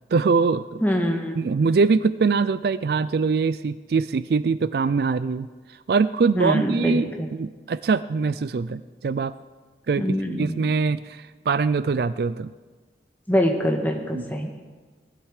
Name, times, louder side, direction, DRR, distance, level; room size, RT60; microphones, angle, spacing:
voice 1, 0.1-0.8 1.4-5.5 5.9-9.3 9.9-10.0 10.4-12.5 14.1-14.2, right 4 dB, 55° right, 15 dB, 0.3 m, -23 dB
voice 2, 0.8-1.5 6.4-7.0 10.0-10.6 13.3-14.5, equal, 10° left, 2 dB, 1.6 m, -24 dB
19.0 x 12.5 x 4.9 m, 1.4 s
head